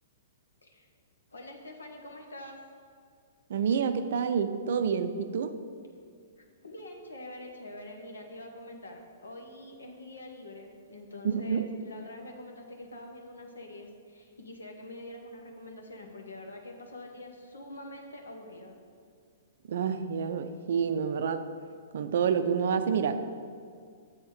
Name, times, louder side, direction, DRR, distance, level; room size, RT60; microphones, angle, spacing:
voice 1, 1.3-2.6 6.4-18.7, left 1 dB, 80° left, 2 dB, 1.2 m, -45 dB
voice 2, 3.5-5.6 11.2-11.7 19.7-21.4 21.9-23.3, right 6 dB, 60° right, 10 dB, 0.5 m, -28 dB
7.2 x 4.3 x 6.6 m, 2.1 s
figure-of-eight pair, 115°, 0 cm